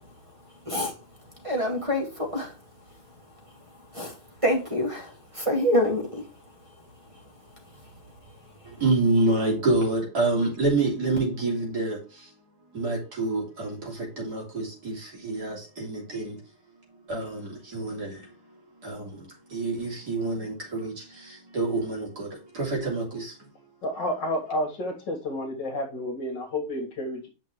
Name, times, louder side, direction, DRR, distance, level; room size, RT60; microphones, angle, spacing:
voice 1, 1.4-2.5 3.9-4.1 4.4-6.2, left 1 dB, 15° right, 2.2 m, -26 dB
voice 2, 8.7-12.3 12.7-16.4 17.1-18.3 18.8-23.4, right 2 dB, 50° right, 3.6 m, -28 dB
voice 3, 23.8-27.3, left 1 dB, 60° left, 2.4 m, -30 dB
8.6 x 6.0 x 3.1 m
omnidirectional pair, 2.2 m